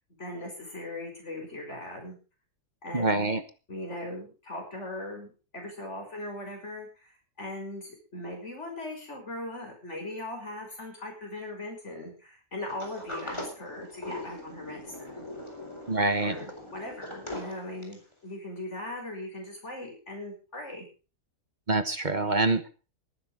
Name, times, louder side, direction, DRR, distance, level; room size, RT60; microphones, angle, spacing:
voice 1, 0.2-2.2 2.8-3.3 3.7-15.2 16.2-20.9, left 1 dB, 50° left, 1 dB, 6.2 m, -39 dB
voice 2, 2.9-3.4 15.9-16.3 21.7-22.7, right 2 dB, 35° right, 10 dB, 1.2 m, -25 dB
Sliding door, 12.7-18.1, left 1 dB, 20° left, 3.9 m, -41 dB
18.0 x 10.0 x 5.0 m, 0.35 s
omnidirectional pair, 1.6 m